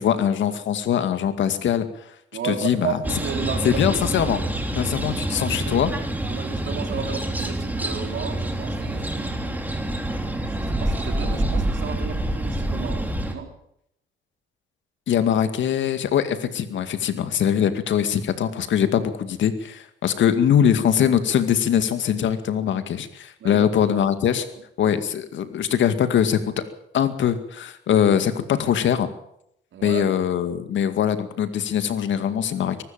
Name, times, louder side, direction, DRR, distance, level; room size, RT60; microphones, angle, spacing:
voice 1, 0.0-1.9 2.4-3.0 3.6-4.4 4.8-5.9 15.1-24.5 24.8-26.4 26.9-29.1 29.8-32.8, left 9 dB, 70° left, 10 dB, 2.2 m, -22 dB
voice 2, 2.3-4.0 4.8-4.9 5.3-5.8 6.2-9.7 10.5-13.5 23.4-23.7 29.7-30.1, right 7 dB, 70° right, 5 dB, 3.9 m, -33 dB
sound 1, 3.0-13.4, right 1 dB, 10° right, 3.5 m, -27 dB
23.0 x 12.5 x 9.0 m, 0.76 s
cardioid pair, 90°, 20 cm